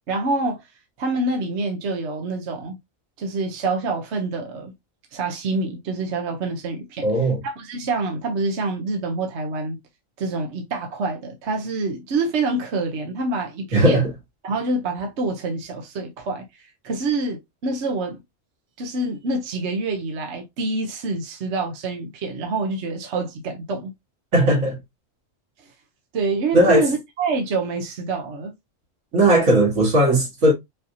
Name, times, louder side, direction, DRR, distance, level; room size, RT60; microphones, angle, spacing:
voice 1, 0.1-0.6 1.0-2.8 3.2-4.7 5.1-7.1 7.4-9.8 10.2-14.1 14.4-18.2 18.8-23.9 26.1-28.5, right 3 dB, 60° right, 1.1 m, -26 dB
voice 2, 7.0-7.4 13.7-14.1 24.3-24.8 26.5-26.9 29.1-30.5, right 1 dB, 80° right, 2.3 m, -17 dB
5.5 x 2.7 x 2.7 m
omnidirectional pair, 1.3 m